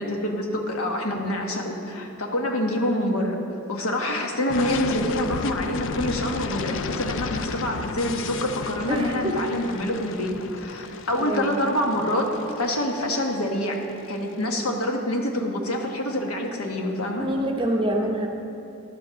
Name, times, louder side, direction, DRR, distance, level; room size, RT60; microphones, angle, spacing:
voice 1, 0.0-3.4 3.7-13.8 14.1-17.3, left 1 dB, 75° left, 2 dB, 1.1 m, -26 dB
sound 1, 4.5-14.3, left 5 dB, 55° left, 0.3 m, -33 dB
voice 2, 8.9-9.5 11.2-11.6 17.2-18.3, right 1 dB, 20° right, 2 dB, 0.7 m, -26 dB
12.0 x 5.2 x 6.3 m, 2.8 s
head